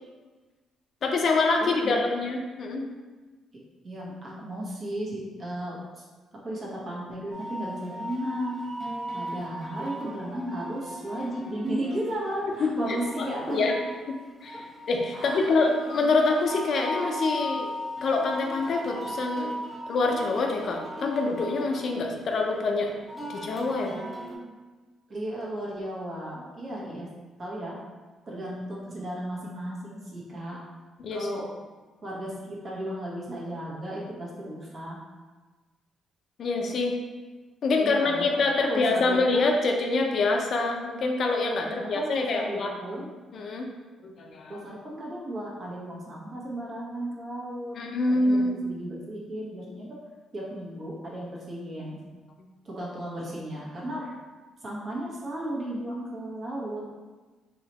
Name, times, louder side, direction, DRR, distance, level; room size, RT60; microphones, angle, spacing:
voice 1, 1.0-2.9 12.6-12.7 13.2-13.7 14.4-17.7 18.0-19.5 19.9-22.9 23.3-24.0 31.0-31.3 36.4-36.9 37.6-42.7 43.3-43.7 44.0-44.6 47.7-48.6, left 3 dB, 60° left, 2 dB, 0.5 m, -26 dB
voice 2, 1.6-2.1 3.8-5.8 6.4-8.6 9.1-13.7 14.5-14.6 15.1-15.6 25.1-27.1 27.4-27.7 28.3-30.6 31.1-31.4 32.0-35.0 37.7-39.5 41.6-43.1 44.5-47.7 48.1-49.9 50.3-52.0 52.6-54.1 54.6-56.8, right 1 dB, 45° right, -5 dB, 1.2 m, -35 dB
sound 1, 7.3-24.3, equal, 5° right, 1.4 m, -38 dB
3.9 x 3.0 x 3.0 m, 1.3 s
cardioid pair, 90°, 0 cm